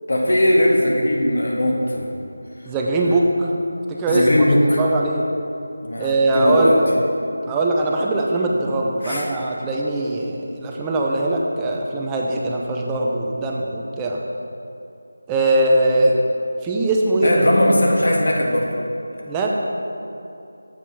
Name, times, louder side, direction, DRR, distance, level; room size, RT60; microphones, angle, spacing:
voice 1, 0.1-2.1 4.1-4.8 5.8-6.8 9.0-9.3 17.2-18.7, left 1 dB, 65° left, -2 dB, 1.7 m, -19 dB
voice 2, 2.7-3.5 3.9-4.5 4.8-5.3 6.0-6.9 7.4-14.2 15.3-16.2 16.6-17.4 19.3-19.5, right 2 dB, 10° right, -1 dB, 0.5 m, -21 dB
7.4 x 5.1 x 5.6 m, 2.8 s
figure-of-eight pair, 170°, 0 cm